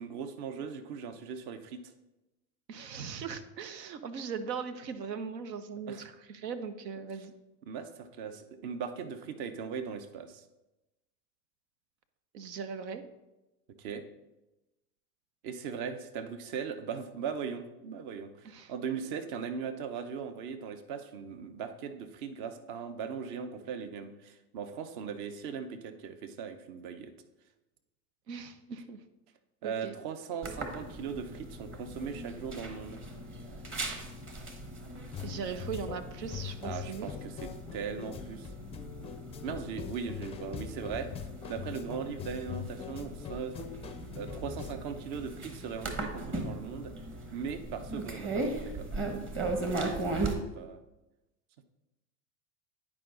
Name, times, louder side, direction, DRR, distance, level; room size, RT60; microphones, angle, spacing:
voice 1, 0.0-1.9 5.9-6.0 7.7-10.4 13.8-14.0 15.4-27.1 29.6-33.0 36.6-38.5 39.4-41.1 41.5-43.8 44.1-46.9 47.3-48.9 49.8-50.8, right 6 dB, 50° right, 9 dB, 0.9 m, -39 dB
voice 2, 2.7-7.3 12.3-13.0 18.4-18.7 28.3-29.0 29.6-29.9 35.2-37.1, right 6 dB, 80° right, 10 dB, 0.9 m, -39 dB
sound 1, 30.4-50.3, right 2 dB, 25° right, 1.2 m, -39 dB
sound 2, 35.1-44.7, left 7 dB, 15° left, 0.4 m, -42 dB
9.7 x 4.9 x 3.9 m, 1.0 s
hypercardioid pair, 85°, 49 cm